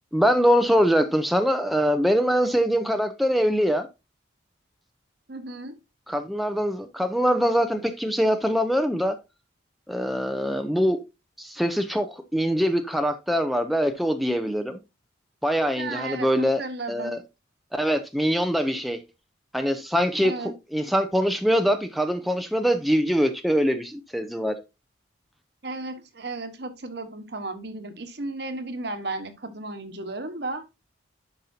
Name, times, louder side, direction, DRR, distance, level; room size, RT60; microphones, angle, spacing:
voice 1, 0.1-3.9 6.1-9.2 9.9-11.0 11.4-14.8 15.4-16.6 16.9-17.2 17.7-19.0 19.5-20.3 20.7-24.6, equal, ahead, 0.6 m, -23 dB
voice 2, 5.3-5.8 15.8-17.1 20.2-20.5 25.6-30.6, right 2 dB, 60° right, 1.3 m, -34 dB
11.5 x 5.4 x 2.8 m
head